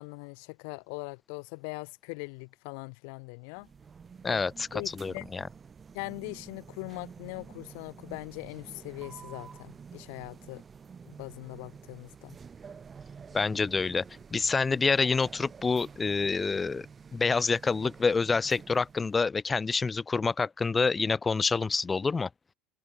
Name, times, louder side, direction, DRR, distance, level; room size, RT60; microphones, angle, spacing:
voice 1, 0.0-3.7 4.3-4.4 4.7-5.2 5.9-10.6 11.1-12.4, left 37 dB, 75° left, 1.0 m, -41 dB
sound 1, 3.6-19.2, right 6 dB, 25° right, 3.1 m, -49 dB
voice 2, 4.2-5.4 13.3-14.0 14.3-16.9 17.1-22.3, left 4 dB, 20° left, 0.4 m, -27 dB
supercardioid pair, 105°, 0 cm